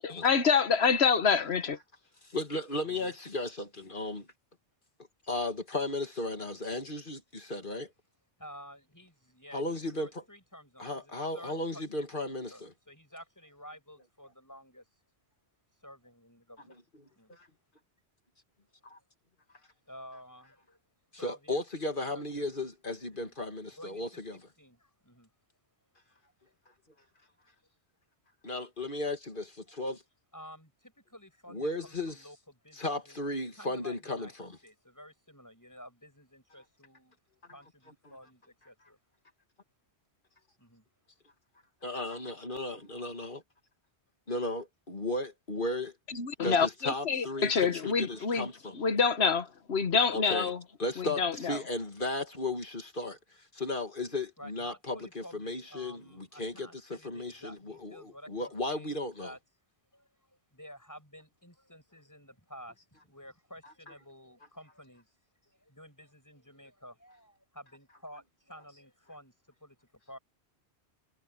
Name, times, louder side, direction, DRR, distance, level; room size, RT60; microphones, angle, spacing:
voice 1, 0.0-1.8 46.1-48.5 48.7-50.6 51.0-51.6, left 6 dB, 65° left, 1.5 m, -27 dB
voice 2, 2.2-4.3 5.3-7.9 9.5-10.2 10.8-12.5 17.3-17.5 18.8-19.0 21.1-24.4 28.4-30.0 31.5-32.2 32.8-34.6 41.8-43.4 44.3-45.9 46.4-48.8 50.1-50.5 50.8-53.2 53.5-59.3, left 2 dB, 45° left, 2.5 m, -35 dB
voice 3, 8.4-12.1 12.5-14.8 15.8-16.8 17.0-17.5 19.9-20.8 21.1-21.7 22.1-22.5 23.2-23.4 23.7-25.3 26.4-26.5 30.3-34.3 34.6-37.2 37.5-39.0 40.6-40.8 54.4-59.4 59.9-65.1 65.4-70.2, equal, 15° left, 7.7 m, -52 dB
omnidirectional pair, 1.2 m